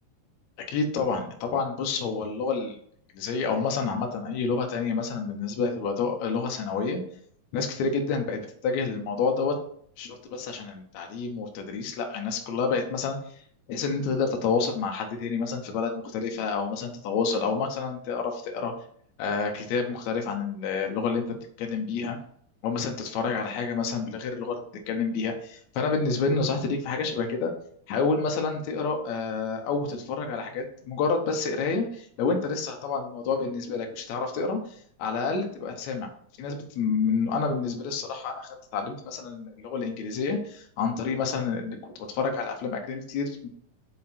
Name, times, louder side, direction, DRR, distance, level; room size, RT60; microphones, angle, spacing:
voice 1, 0.7-2.8 3.2-7.0 7.5-9.6 10.0-13.4 13.7-18.8 19.2-22.2 22.6-27.5 27.9-36.1 36.4-43.5, left 4 dB, 70° left, 3 dB, 2.0 m, -29 dB
5.7 x 4.8 x 4.3 m, 0.63 s
omnidirectional pair, 3.7 m